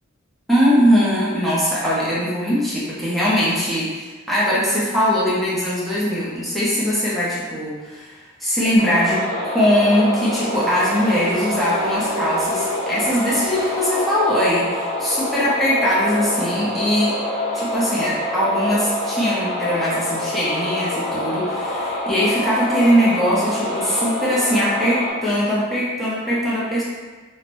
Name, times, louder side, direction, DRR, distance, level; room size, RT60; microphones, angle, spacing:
voice 1, 0.5-9.2 9.5-17.2 17.5-26.8, equal, ahead, -9 dB, 0.6 m, -21 dB
sound 1, 8.8-25.1, left 1 dB, 35° left, 0.8 m, -26 dB
sound 2, 10.5-13.8, right 3 dB, 75° right, 0.4 m, -33 dB
2.5 x 2.1 x 3.0 m, 1.4 s
head